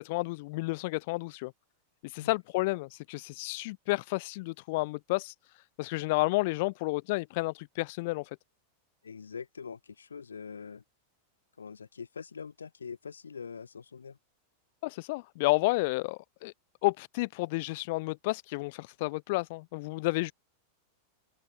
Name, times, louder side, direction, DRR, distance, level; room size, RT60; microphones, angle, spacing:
voice 1, 0.0-1.5 2.0-8.4 14.8-16.5 16.8-20.3, left 23 dB, 50° left, 0.5 m, -31 dB
voice 2, 9.0-10.8 11.6-14.2, left 6 dB, 75° left, 1.3 m, -43 dB
open air
figure-of-eight pair, 90°, 0 cm